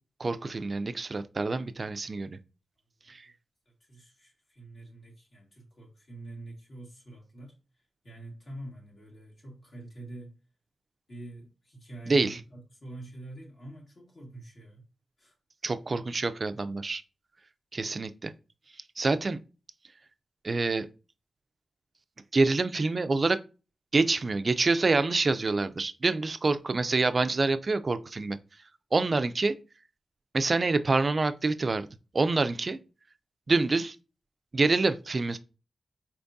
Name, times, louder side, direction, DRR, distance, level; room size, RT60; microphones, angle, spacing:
voice 1, 0.2-2.4 3.1-3.2 12.1-12.4 15.6-17.0 17.7-18.3 19.0-19.4 20.4-20.9 22.3-23.4 23.9-28.4 28.9-29.5 30.3-31.9 32.1-32.8 33.5-34.0 34.5-35.4, right 3 dB, 40° right, 0.3 m, -26 dB
voice 2, 3.0-3.3 3.7-10.4 11.1-14.9 15.2-15.3, right 2 dB, 50° left, 1.8 m, -46 dB
4.4 x 3.5 x 2.6 m
wide cardioid pair, 100°, 0 cm